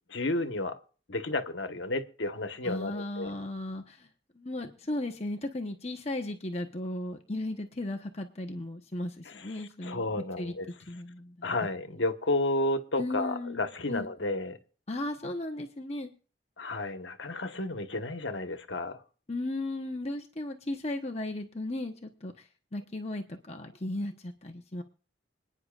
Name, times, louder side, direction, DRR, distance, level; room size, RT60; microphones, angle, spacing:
voice 1, 0.1-0.8 1.1-3.3 9.8-10.7 11.4-14.6 16.6-19.0, left 2 dB, 85° left, 1.3 m, -32 dB
voice 2, 2.6-4.1 4.3-10.6 10.9-11.5 13.0-14.3 14.9-16.1 19.3-24.8, left 1 dB, 35° left, 1.0 m, -36 dB
26.5 x 9.7 x 2.5 m
head